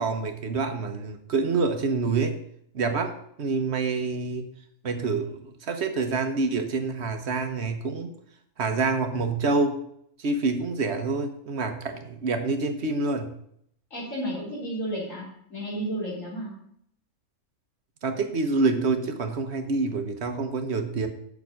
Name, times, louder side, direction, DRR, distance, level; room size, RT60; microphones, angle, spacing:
voice 1, 0.0-2.4 2.7-4.5 4.8-8.1 8.6-9.8 10.2-13.3 18.0-21.1, right 3 dB, 60° right, 6 dB, 1.3 m, -27 dB
voice 2, 13.9-15.2 15.5-16.5, right 1 dB, 85° left, -5 dB, 4.0 m, -32 dB
7.1 x 6.4 x 6.3 m, 0.70 s
omnidirectional pair, 1.3 m